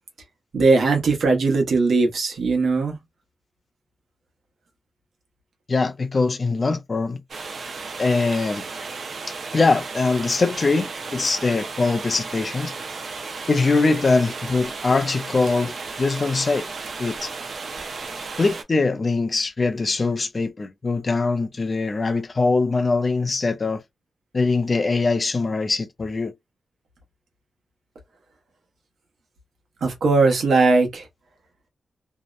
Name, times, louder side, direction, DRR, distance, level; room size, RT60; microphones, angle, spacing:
voice 1, 0.5-2.9 29.8-31.0, right 3 dB, 65° right, 0.9 m, -19 dB
voice 2, 5.7-7.2 8.0-8.6 9.5-12.7 13.5-16.7 17.0-17.3 18.4-23.8 24.3-26.3, left 3 dB, 30° left, 0.4 m, -22 dB
sound 1, 7.3-18.6, right 4 dB, 50° right, 0.5 m, -34 dB
2.6 x 2.0 x 2.3 m
wide cardioid pair, 165°, 0 cm